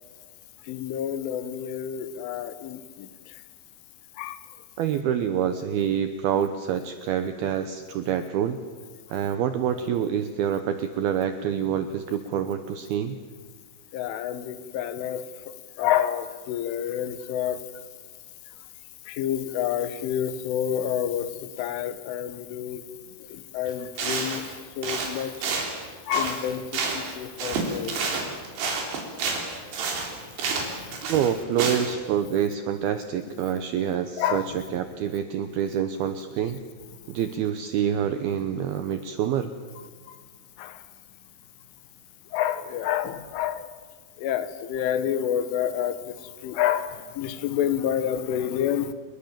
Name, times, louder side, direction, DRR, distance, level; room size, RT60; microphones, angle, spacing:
voice 1, 0.7-3.1 4.2-4.4 13.9-15.3 15.8-17.6 19.1-21.3 21.6-22.8 23.3-24.4 24.8-25.4 26.1-26.7 26.9-28.0 30.6-31.0 34.2-34.5 40.1-40.2 40.6-40.8 42.3-43.7 44.2-46.0 46.4-48.9, left 10 dB, 80° left, 12 dB, 3.7 m, -28 dB
voice 2, 4.8-8.6 9.1-13.2 31.1-36.6 37.1-39.5, right 9 dB, 80° right, 9 dB, 2.2 m, -27 dB
sound 1, 23.7-23.8 24.0-24.5 24.8-27.1 27.4-32.0, right 4 dB, 60° right, 5.5 m, -29 dB
29.0 x 20.5 x 7.4 m, 1.5 s
omnidirectional pair, 5.6 m